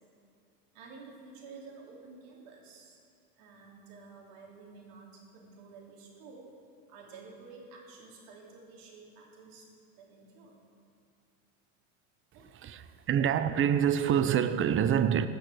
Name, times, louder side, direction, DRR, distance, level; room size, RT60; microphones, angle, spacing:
voice 1, 0.7-3.0 3.4-6.5 6.9-9.7 10.0-10.6 12.3-12.5, right 4 dB, 75° right, 3.3 m, -51 dB
voice 2, 12.5-15.3, right 9 dB, 30° right, 0.6 m, -26 dB
16.5 x 6.5 x 6.4 m
supercardioid pair, 105°, 43 cm